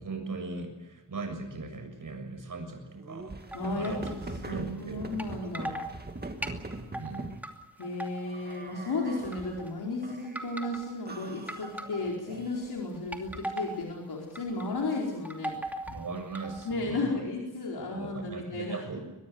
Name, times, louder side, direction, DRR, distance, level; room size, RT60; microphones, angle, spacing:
voice 1, 0.0-3.4 3.7-4.1 4.5-5.0 7.0-7.3 15.9-17.2 17.8-19.0, right 3 dB, 55° right, 5 dB, 7.1 m, -39 dB
sound 1, 3.0-7.4 8.3-9.6 10.0-10.6 11.1-12.9, right 2 dB, 25° right, 2.1 m, -42 dB
voice 2, 3.5-4.2 4.4-5.8 7.8-15.6 16.6-19.0, left 2 dB, 85° left, -1 dB, 4.7 m, -34 dB
sound 2, 3.5-4.3 5.2-5.3 5.5-5.9 6.4-7.5 7.8-8.6 9.2-9.7 10.2-10.9 11.5-12.3 13.0-13.8 14.4-14.7 15.0-16.8, right 1 dB, 5° right, 2.6 m, -39 dB
23.5 x 21.5 x 7.9 m, 1.0 s
wide cardioid pair, 135°, 38 cm